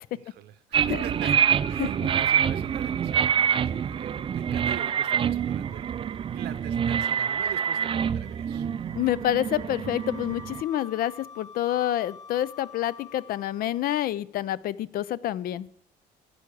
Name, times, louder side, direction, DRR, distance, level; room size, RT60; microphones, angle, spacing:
voice 1, 0.3-5.9 6.3-8.7, right 11 dB, 75° right, 14 dB, 0.9 m, -43 dB
sound 1, 0.7-10.6, right 8 dB, 30° right, 0.3 m, -26 dB
voice 2, 9.0-15.7, left 12 dB, 60° left, 19 dB, 0.5 m, -28 dB
Wind instrument woodwind instrument, 9.8-13.9, left 6 dB, 40° left, 1.0 m, -46 dB
12.0 x 4.8 x 8.5 m, 0.74 s
cardioid pair, 110°, 17 cm